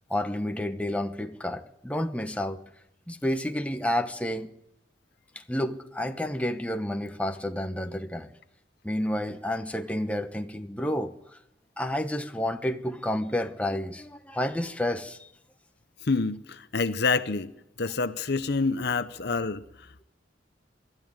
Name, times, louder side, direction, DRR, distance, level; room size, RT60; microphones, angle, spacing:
voice 1, 0.0-2.6 3.1-4.5 5.3-8.3 8.8-11.1 11.8-15.3, left 1 dB, 5° left, 1.0 m, -30 dB
voice 2, 16.0-17.5 17.8-20.0, left 4 dB, 60° left, 0.8 m, -27 dB
23.5 x 13.0 x 9.0 m
head